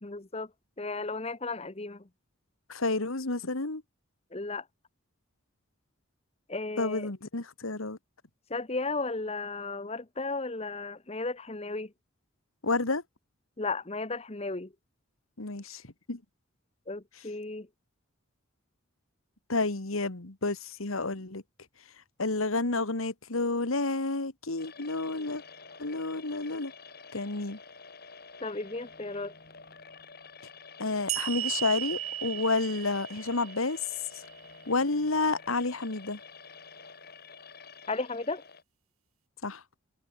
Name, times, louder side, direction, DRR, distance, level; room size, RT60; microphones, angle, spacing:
voice 1, 0.0-0.5 0.8-2.1 4.3-4.7 6.5-7.1 8.5-11.9 13.6-14.7 16.9-17.7 28.4-29.3 37.9-38.5, left 3 dB, 30° left, 1.1 m, -34 dB
voice 2, 2.7-3.8 6.8-8.0 12.6-13.0 15.4-15.8 16.1-16.2 19.5-21.4 22.2-25.4 25.8-26.7 27.1-27.6 30.8-33.8 34.7-36.2 39.4-39.6, left 3 dB, 80° left, 1.9 m, -30 dB
sound 1, 24.6-38.6, left 5 dB, 45° left, 6.6 m, -49 dB
sound 2, 31.1-34.5, right 14 dB, 90° right, 2.7 m, -36 dB
head